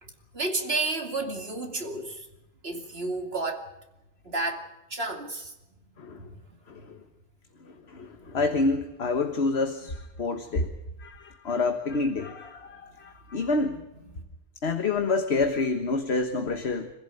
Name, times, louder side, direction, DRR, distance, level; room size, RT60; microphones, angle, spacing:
voice 1, 0.0-2.3 2.6-3.6 4.2-5.5 6.2-6.3 13.6-14.1, right 2 dB, 60° right, 4 dB, 2.9 m, -32 dB
voice 2, 6.7-7.0 7.9-10.7 11.0-13.8 14.6-16.9, left 3 dB, 65° left, 7 dB, 1.7 m, -28 dB
26.5 x 15.5 x 9.1 m, 0.95 s
omnidirectional pair, 1.2 m